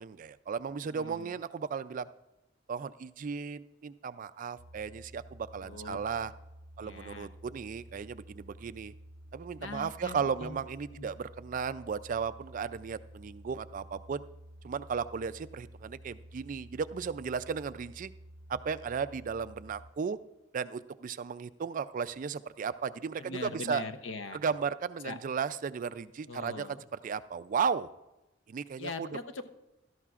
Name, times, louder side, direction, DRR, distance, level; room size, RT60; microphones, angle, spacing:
voice 1, 0.0-2.1 2.7-6.3 6.8-8.9 9.3-14.2 14.6-18.1 18.5-20.2 20.5-23.8 24.4-26.7 27.0-27.9 28.5-29.1, right 6 dB, 45° right, 14 dB, 0.3 m, -35 dB
voice 2, 0.9-1.3 5.6-6.0 6.8-7.3 9.6-10.6 10.9-11.1 23.2-24.4 25.0-25.2 26.3-26.8 28.8-29.5, left 3 dB, 85° left, 10 dB, 0.8 m, -41 dB
sound 1, 4.6-19.9, equal, 60° right, 0.7 m, -52 dB
16.5 x 12.5 x 2.4 m, 0.98 s
head